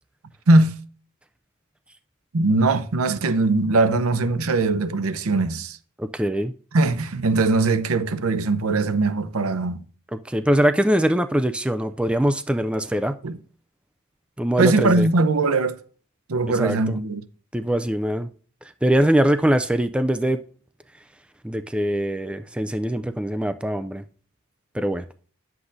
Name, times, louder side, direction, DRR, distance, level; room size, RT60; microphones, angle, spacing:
voice 1, 0.5-0.8 2.3-5.8 6.7-9.8 13.2-13.4 14.6-15.8 16.3-17.2, right 2 dB, 85° right, 0.7 m, -20 dB
voice 2, 6.0-6.5 10.3-13.2 14.4-15.1 16.6-16.8 17.5-18.3 18.8-20.4 21.4-24.0 24.7-25.1, right 1 dB, 5° right, 0.3 m, -22 dB
9.9 x 7.8 x 2.6 m
head